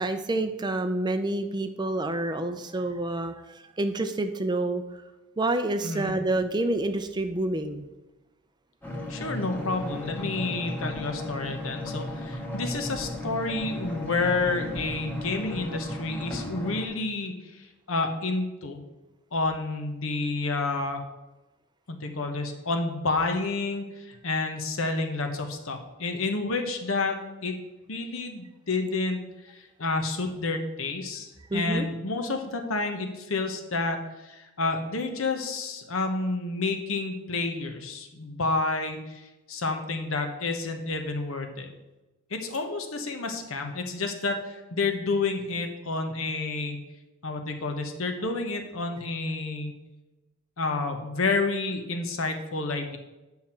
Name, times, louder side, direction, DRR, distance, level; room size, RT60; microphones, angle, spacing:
voice 1, 0.0-3.3 3.8-4.8 5.4-7.9 31.5-31.9, right 2 dB, 20° right, 8 dB, 0.5 m, -28 dB
voice 2, 5.8-6.1 9.1-18.8 19.3-21.0 21.9-27.5 27.9-41.7 42.3-46.8 47.2-49.8 50.6-53.0, left 3 dB, 65° left, 5 dB, 1.1 m, -30 dB
sound 1, 8.8-16.9, left 1 dB, 10° left, 1.4 m, -35 dB
9.6 x 5.8 x 4.4 m, 1.1 s
head